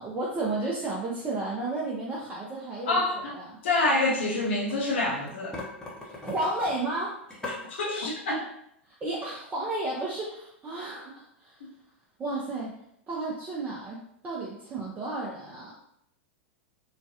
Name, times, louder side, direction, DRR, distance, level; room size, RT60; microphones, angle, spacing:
voice 1, 0.0-3.0 3.3-3.5 6.0-7.2 9.0-11.6 12.2-12.8 13.1-15.7, right 2 dB, 25° right, -5 dB, 0.6 m, -32 dB
voice 2, 2.9-5.6 7.4-8.5, left 2 dB, 65° left, -2 dB, 0.7 m, -27 dB
sound 1, 4.2-4.8 5.2-7.7, left 2 dB, 10° left, 0.7 m, -39 dB
3.1 x 2.2 x 2.7 m, 0.74 s
figure-of-eight pair, 95°, 7 cm